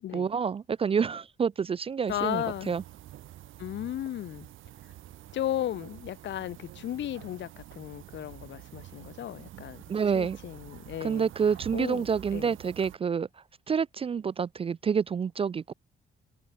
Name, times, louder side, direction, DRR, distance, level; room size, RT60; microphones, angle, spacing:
voice 1, 0.1-2.8 9.9-10.4 11.0-13.3 13.7-15.7, right 6 dB, 30° right, 0.4 m, -28 dB
voice 2, 2.1-2.7 3.6-4.5 5.3-9.8 10.1-11.3 11.7-12.5, left 12 dB, 65° left, 0.9 m, -35 dB
sound 1, 2.1-13.0, right 14 dB, 85° right, 2.6 m, -48 dB
cardioid pair, 90°, 20 cm